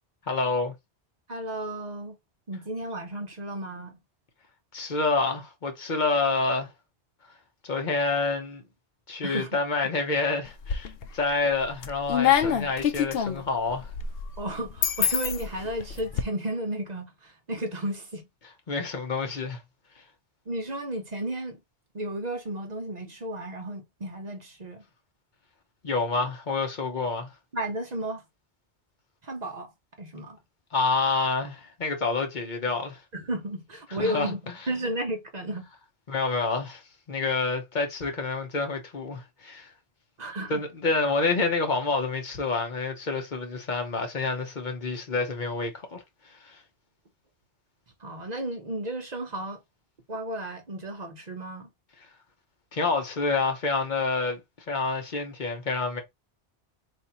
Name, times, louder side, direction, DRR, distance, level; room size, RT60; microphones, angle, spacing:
voice 1, 0.3-0.7 4.7-6.7 7.6-8.6 9.1-13.9 18.7-19.6 25.8-27.3 30.7-33.0 33.9-34.3 36.1-36.8 37.1-39.7 40.5-46.6 52.7-54.4 54.7-56.0, left 3 dB, 45° left, 1.0 m, -28 dB
voice 2, 1.3-2.2 2.5-4.0 9.2-9.6 14.4-18.3 20.5-21.6 21.9-24.8 27.5-28.2 29.2-29.7 30.0-30.4 33.1-34.4 34.7-35.7 40.2-40.6 48.0-49.6 50.1-51.7, right 1 dB, 40° right, 0.8 m, -33 dB
sound 1, 10.5-11.2 11.6-16.2, left 9 dB, 65° left, 0.7 m, -26 dB
3.5 x 2.5 x 4.2 m
omnidirectional pair, 1.2 m